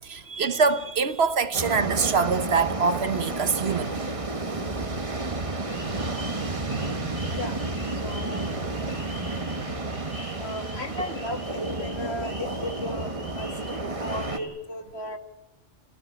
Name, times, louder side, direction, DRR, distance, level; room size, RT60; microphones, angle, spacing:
voice 1, 0.0-4.0, right 5 dB, 60° right, 1.2 m, -24 dB
sound 1, 1.5-14.4, right 2 dB, 30° right, 1.4 m, -31 dB
sound 2, 5.7-14.5, left 1 dB, 85° left, 8.2 m, -46 dB
voice 2, 8.0-8.5 10.4-15.2, left 1 dB, 60° left, 2.2 m, -35 dB
27.5 x 14.5 x 8.7 m
omnidirectional pair, 1.2 m